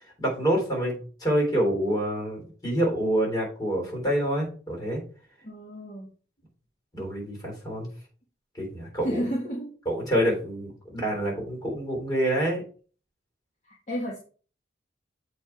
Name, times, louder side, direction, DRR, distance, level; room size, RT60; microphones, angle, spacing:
voice 1, 0.2-5.0 6.9-7.9 8.5-9.3 9.9-12.6, right 1 dB, 20° left, -1 dB, 3.7 m, -27 dB
voice 2, 5.4-6.1 9.0-9.8 13.7-14.2, equal, 40° left, -2 dB, 1.5 m, -32 dB
7.7 x 4.9 x 4.5 m, 0.40 s
head